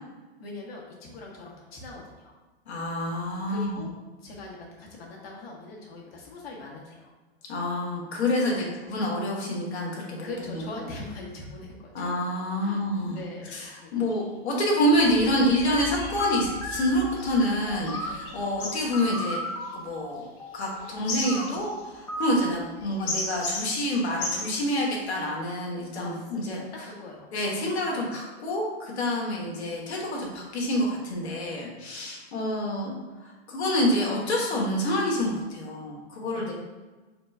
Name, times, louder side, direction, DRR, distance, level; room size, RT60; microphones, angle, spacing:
voice 1, 0.4-2.4 3.5-3.9 4.2-7.1 8.4-8.7 10.2-12.2 12.6-14.1 25.9-27.3 27.9-28.1 36.3-36.5, left 2 dB, 65° left, -2 dB, 1.4 m, -42 dB
voice 2, 2.7-3.8 7.5-10.6 11.9-13.2 13.5-19.4 19.7-20.3 20.5-26.6 27.3-32.9 33.2-36.5, left 1 dB, 90° left, -2 dB, 1.3 m, -27 dB
sound 1, 13.2-13.3 13.5-13.6 14.1-14.2 14.7-25.3, left 2 dB, 35° left, 1.1 m, -37 dB
sound 2, 16.1-18.3 18.9-21.5 22.1-22.4, equal, 10° left, 0.5 m, -35 dB
4.2 x 2.4 x 4.3 m, 1.2 s
hypercardioid pair, 135°, 32 cm